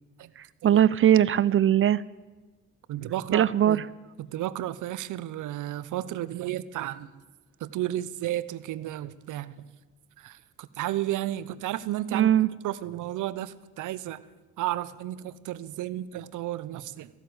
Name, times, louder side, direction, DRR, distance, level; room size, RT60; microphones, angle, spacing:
voice 1, 0.6-2.0 3.3-3.8 12.1-12.5, right 10 dB, 45° right, 19 dB, 0.5 m, -20 dB
voice 2, 2.9-3.9 4.2-7.1 7.6-9.5 10.2-12.3 12.6-14.2 14.6-17.1, right 13 dB, 80° right, 16 dB, 0.8 m, -33 dB
15.5 x 11.5 x 8.0 m, 1.2 s
cardioid pair, 90°, 30 cm